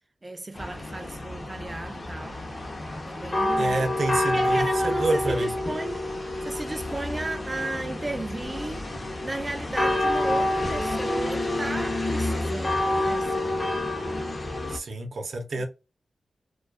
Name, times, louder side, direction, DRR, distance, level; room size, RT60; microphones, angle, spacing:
voice 1, 0.2-2.4 3.0-4.0 4.3-8.9 9.2-13.6, right 2 dB, 25° right, 0.3 m, -35 dB
sound 1, 0.5-14.8, left 1 dB, 35° left, 0.6 m, -28 dB
voice 2, 3.6-5.5 14.7-15.7, right 2 dB, 70° right, 0.6 m, -28 dB
2.3 x 2.3 x 2.3 m
wide cardioid pair, 85°, 0 cm